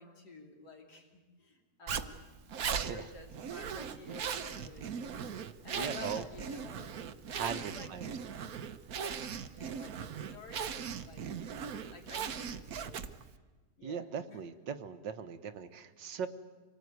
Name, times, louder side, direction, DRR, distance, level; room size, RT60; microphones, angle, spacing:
voice 1, 0.0-2.3 2.7-5.1 5.4-7.0 7.3-8.2 9.0-11.3 11.9-13.1 13.8-14.4, left 3 dB, 65° left, 2 dB, 3.4 m, -51 dB
Zipper (clothing), 1.9-13.3, right 7 dB, 60° right, 1.3 m, -39 dB
voice 2, 2.7-3.1 5.8-6.3 7.3-8.1 13.8-16.3, right 6 dB, 90° right, 9 dB, 1.8 m, -39 dB
26.0 x 18.5 x 9.5 m, 1.3 s
omnidirectional pair, 1.9 m